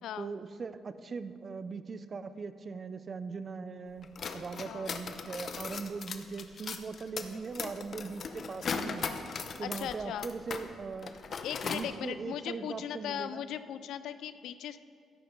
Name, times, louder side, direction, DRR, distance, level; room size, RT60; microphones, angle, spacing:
voice 1, 0.2-9.2 9.6-11.1 11.6-13.4, right 4 dB, 40° right, 12 dB, 0.6 m, -40 dB
sound 1, 4.0-10.7 10.9-11.9, left 5 dB, 50° left, 0.8 m, -38 dB
voice 2, 9.6-10.3 11.4-14.8, left 10 dB, 80° left, 12 dB, 0.3 m, -38 dB
12.5 x 11.0 x 3.9 m, 2.4 s
cardioid pair, 90°, 0 cm